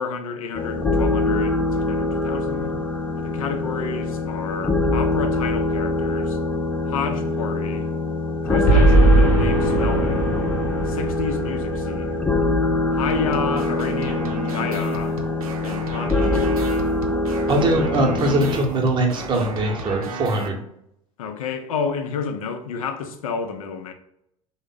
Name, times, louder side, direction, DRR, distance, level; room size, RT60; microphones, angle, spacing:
voice 1, 0.0-2.8 3.2-6.4 6.9-7.9 8.4-10.4 10.8-12.3 12.9-15.2 15.6-16.7 21.2-23.9, left 5 dB, 70° left, 0.5 m, -30 dB
sound 1, 0.5-18.6, left 2 dB, 5° left, 0.3 m, -24 dB
Boom, 8.7-13.1, right 2 dB, 40° left, 1.0 m, -20 dB
sound 2, 13.1-20.5, right 3 dB, 75° right, 0.5 m, -33 dB
voice 2, 17.5-20.6, right 1 dB, 25° right, 0.8 m, -21 dB
3.4 x 2.1 x 3.7 m
figure-of-eight pair, 75°, 18 cm